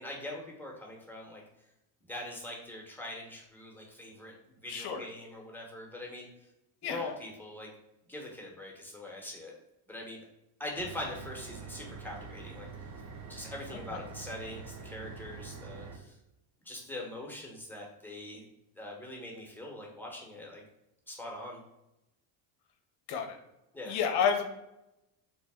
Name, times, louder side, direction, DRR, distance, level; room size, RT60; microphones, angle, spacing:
voice 1, 0.0-1.4 2.1-4.3 4.6-6.5 6.8-7.7 8.1-9.5 9.9-10.3 10.6-12.9 13.3-16.2 16.6-18.5 18.7-20.6 21.1-21.6 23.7-24.0, left 1 dB, 5° left, -2 dB, 0.9 m, -42 dB
voice 2, 4.7-5.0 6.8-7.0 23.1-23.4 23.9-24.4, left 7 dB, 50° left, 5 dB, 0.7 m, -29 dB
sound 1, 10.8-16.0, right 5 dB, 35° right, 0.5 m, -45 dB
3.3 x 2.1 x 3.5 m, 0.90 s
supercardioid pair, 90°, 50 cm